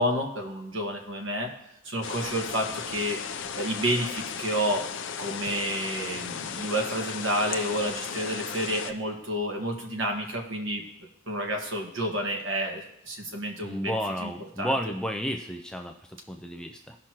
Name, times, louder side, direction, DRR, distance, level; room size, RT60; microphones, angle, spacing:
voice 1, 0.0-1.5 1.8-3.2 3.5-4.8 5.2-10.8 11.3-14.3 14.6-14.7, equal, 55° right, 1 dB, 1.6 m, -30 dB
sound 1, 2.0-8.9, left 7 dB, 55° left, 0.5 m, -35 dB
voice 2, 13.6-17.0, equal, 5° left, 4 dB, 0.3 m, -32 dB
17.0 x 6.1 x 3.0 m, 0.80 s
head